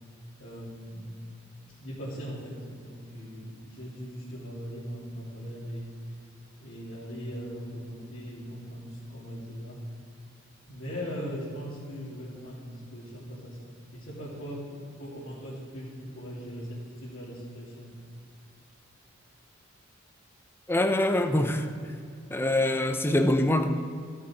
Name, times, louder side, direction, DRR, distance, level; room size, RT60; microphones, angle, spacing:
voice 1, 0.4-1.1 1.7-5.9 6.6-9.8 10.7-17.9, equal, 65° left, -11 dB, 3.4 m, -39 dB
voice 2, 20.7-21.7 22.3-23.7, left 1 dB, 10° left, 8 dB, 0.7 m, -24 dB
15.5 x 7.7 x 4.7 m, 2.3 s
head